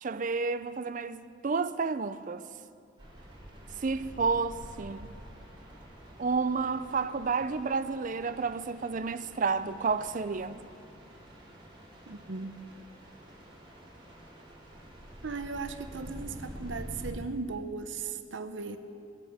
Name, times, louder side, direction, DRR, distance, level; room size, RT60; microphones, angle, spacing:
voice 1, 0.0-2.4 3.8-5.1 6.2-10.6, right 4 dB, 40° right, 0.5 m, -30 dB
sound 1, 3.0-17.1, equal, 25° right, 4.1 m, -48 dB
voice 2, 12.1-12.6 15.2-18.8, right 4 dB, 70° right, 0.8 m, -37 dB
21.0 x 8.8 x 7.3 m
head